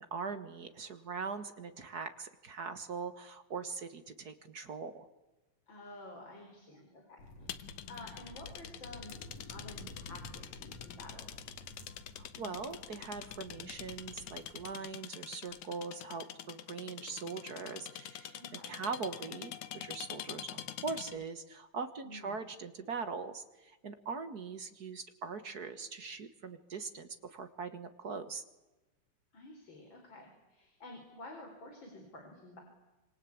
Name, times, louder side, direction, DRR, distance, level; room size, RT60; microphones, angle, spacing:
voice 1, 0.0-5.1 12.2-28.4, right 5 dB, 45° right, 10 dB, 1.4 m, -41 dB
voice 2, 5.7-11.5 18.3-18.8 22.0-22.3 29.3-32.6, left 2 dB, 35° left, 3 dB, 5.1 m, -51 dB
sound 1, 7.2-14.7, left 2 dB, 60° left, 4.5 m, -51 dB
sound 2, 7.5-21.3, left 11 dB, 75° left, 2.4 m, -46 dB
27.0 x 26.0 x 8.6 m, 1.1 s
omnidirectional pair, 3.5 m